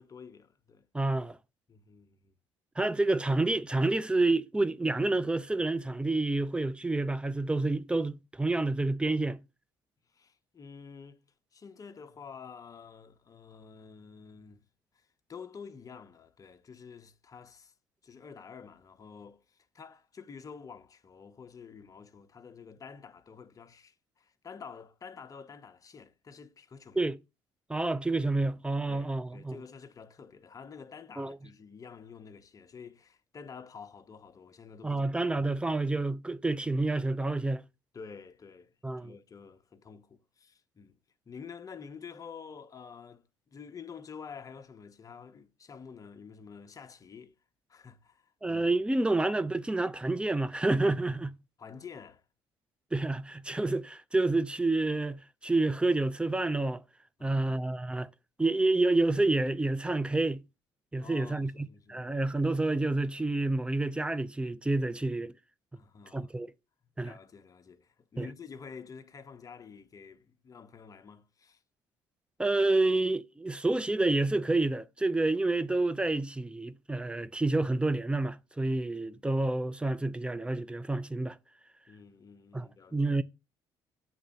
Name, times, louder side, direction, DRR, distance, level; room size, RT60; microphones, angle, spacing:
voice 1, 0.0-0.9 1.7-2.3 10.1-11.2 11.5-14.7 14.9-17.7 18.0-27.1 28.9-35.1 37.9-38.8 39.0-41.0 41.3-47.3 47.7-48.7 50.1-50.2 51.6-52.2 57.2-57.7 61.0-62.1 65.7-66.3 66.8-71.6 79.0-79.2 81.9-83.2, left 6 dB, 35° left, 1.1 m, -49 dB
voice 2, 0.9-1.4 2.8-9.4 27.0-27.2 27.7-29.6 31.2-31.4 34.8-37.6 38.8-39.1 48.4-51.3 52.9-56.8 57.2-58.1 58.4-60.4 60.9-65.3 66.1-66.5 67.0-67.1 68.2-68.3 72.4-81.4 82.5-83.2, right 2 dB, 10° right, 0.6 m, -29 dB
8.8 x 3.4 x 6.7 m
supercardioid pair, 85°, 10 cm